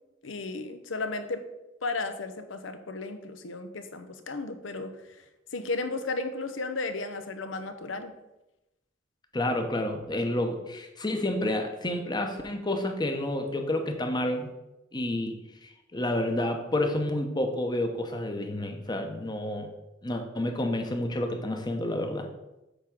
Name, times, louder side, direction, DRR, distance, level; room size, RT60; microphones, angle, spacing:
voice 1, 0.2-1.4 1.8-5.2 5.5-8.1, left 3 dB, 90° left, 8 dB, 0.8 m, -34 dB
voice 2, 9.3-14.5 14.9-15.4 15.6-19.7 20.0-22.3, left 1 dB, 20° left, 5 dB, 0.9 m, -29 dB
8.2 x 3.7 x 5.9 m, 0.96 s
head